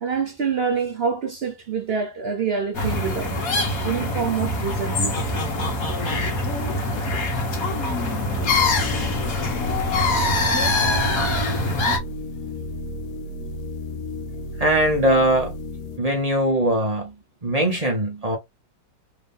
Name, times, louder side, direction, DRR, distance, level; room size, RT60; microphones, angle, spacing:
voice 1, 0.0-3.3 3.8-5.2, right 6 dB, 70° right, 0.5 m, -26 dB
sound 1, 2.7-12.0, left 2 dB, 55° left, 1.5 m, -23 dB
sound 2, 8.4-16.0, left 2 dB, 70° left, 0.8 m, -32 dB
voice 2, 14.6-15.6 16.0-17.1 17.4-18.4, right 1 dB, 30° right, 0.7 m, -21 dB
3.6 x 2.8 x 3.4 m
omnidirectional pair, 1.9 m